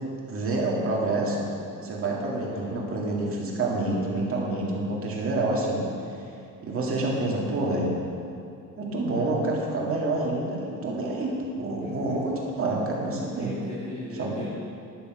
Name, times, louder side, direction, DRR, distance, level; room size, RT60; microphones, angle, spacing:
voice 1, 0.3-1.5 1.8-6.2 6.6-7.9 8.8-11.3 11.6-13.5 14.2-14.3, right 2 dB, 40° right, -3 dB, 2.1 m, -28 dB
voice 2, 2.5-2.8 11.8-12.2 13.4-14.5, left 1 dB, 20° left, -7 dB, 1.7 m, -39 dB
11.0 x 6.8 x 6.1 m, 2.6 s
cardioid pair, 150°, 35 cm